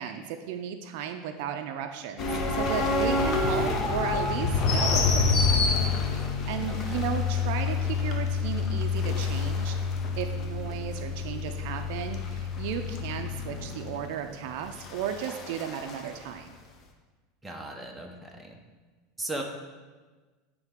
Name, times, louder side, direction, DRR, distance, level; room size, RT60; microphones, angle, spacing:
voice 1, 0.0-5.6 6.5-9.8 10.2-16.6, right 8 dB, 65° right, 7 dB, 0.4 m, -35 dB
sound 1, 2.2-16.0, left 4 dB, 35° left, 0.7 m, -28 dB
voice 2, 6.7-7.1 17.4-18.6 19.2-19.4, right 2 dB, 10° right, 1 dB, 0.7 m, -37 dB
8.9 x 3.3 x 3.6 m, 1.3 s
supercardioid pair, 150°, 0 cm